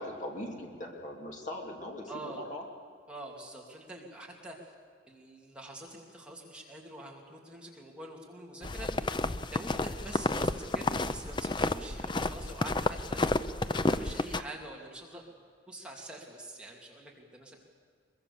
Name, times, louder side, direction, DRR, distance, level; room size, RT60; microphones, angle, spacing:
voice 1, 0.0-2.6, left 1 dB, 40° left, 0 dB, 2.7 m, -40 dB
voice 2, 2.1-2.4 3.1-4.7 5.1-9.1 9.5-13.4 13.7-15.4 15.7-17.6, right 1 dB, 5° right, -2 dB, 2.6 m, -45 dB
sound 1, 8.6-14.4, left 2 dB, 25° left, 0.5 m, -31 dB
23.5 x 23.0 x 7.0 m, 2.1 s
head